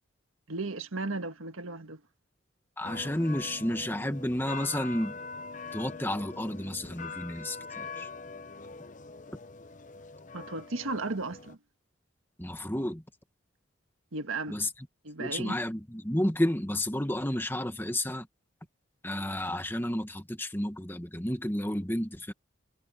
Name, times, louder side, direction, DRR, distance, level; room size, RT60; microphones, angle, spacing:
voice 1, 0.5-2.0 10.3-11.6 14.1-14.6 15.0-15.6, right 3 dB, 85° right, 1.6 m, -35 dB
sound 1, 2.8-11.6, left 4 dB, 40° left, 0.8 m, -43 dB
voice 2, 2.8-5.1 5.7-8.1 12.4-13.0 14.5-14.7 15.2-18.3 19.0-22.3, left 1 dB, 10° left, 1.6 m, -31 dB
head